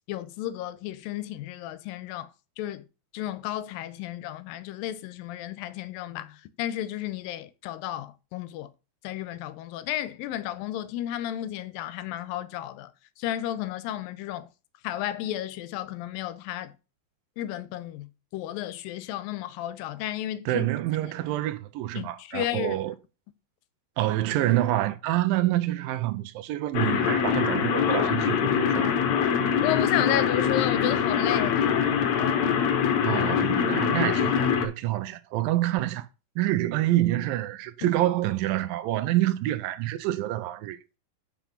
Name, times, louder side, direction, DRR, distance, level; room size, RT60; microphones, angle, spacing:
voice 1, 0.1-2.3 2.6-2.9 3.1-8.7 9.0-12.9 13.2-14.5 14.8-16.7 17.4-20.7 21.0-21.1 22.0-22.8 29.6-31.9 37.8-37.9, left 12 dB, 85° left, 2.4 m, -33 dB
voice 2, 20.5-22.9 24.0-29.0 33.0-36.1 36.4-40.8, right 15 dB, 85° right, 2.3 m, -27 dB
sound 1, 26.7-34.7, left 8 dB, 65° left, 1.9 m, -24 dB
6.0 x 6.0 x 5.2 m
omnidirectional pair, 4.0 m